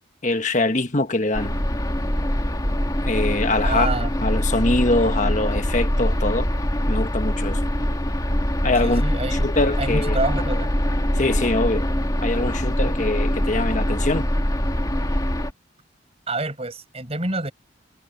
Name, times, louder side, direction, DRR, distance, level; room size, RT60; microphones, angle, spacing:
voice 1, 0.2-1.5 3.0-3.9 4.2-6.5 6.9-7.6 8.6-9.0 9.3-10.2 11.1-11.9 12.2-14.3, left 2 dB, 40° left, 1.5 m, -23 dB
sound 1, 1.3-15.5, equal, 20° left, 2.2 m, -23 dB
voice 2, 3.6-4.1 8.8-9.4 9.8-10.7 16.3-17.5, right 2 dB, 30° right, 5.5 m, -27 dB
head